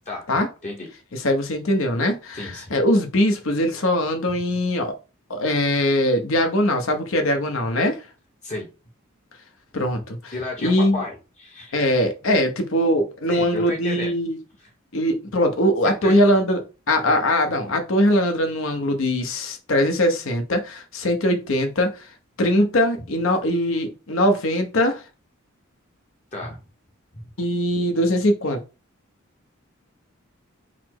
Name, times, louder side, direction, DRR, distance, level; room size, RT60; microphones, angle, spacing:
voice 1, 1.1-4.9 5.3-8.0 9.7-10.3 10.6-11.0 11.7-14.4 14.9-22.1 22.4-25.0 27.4-28.6, left 1 dB, 65° left, 0.8 m, -21 dB
voice 2, 2.3-2.7 8.4-8.7 10.3-11.8 13.3-14.1 14.6-14.7 15.8-16.1 17.0-17.2 26.3-26.6 27.1-27.2, left 2 dB, 35° left, 0.9 m, -33 dB
4.1 x 2.0 x 4.5 m
head